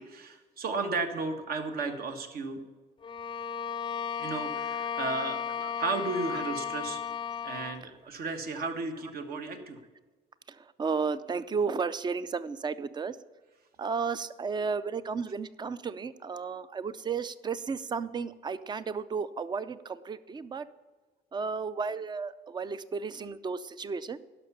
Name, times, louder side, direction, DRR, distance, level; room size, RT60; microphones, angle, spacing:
voice 1, 0.0-2.6 4.2-5.4 5.8-7.0 7.4-9.8, right 3 dB, 60° right, 6 dB, 1.4 m, -34 dB
Bowed string instrument, 3.0-7.9, left 7 dB, 25° left, 0.5 m, -34 dB
voice 2, 10.5-13.2 13.8-20.7 21.3-24.2, right 5 dB, 25° right, 15 dB, 0.5 m, -33 dB
12.0 x 5.8 x 6.9 m, 1.3 s
cardioid pair, 140°, 17 cm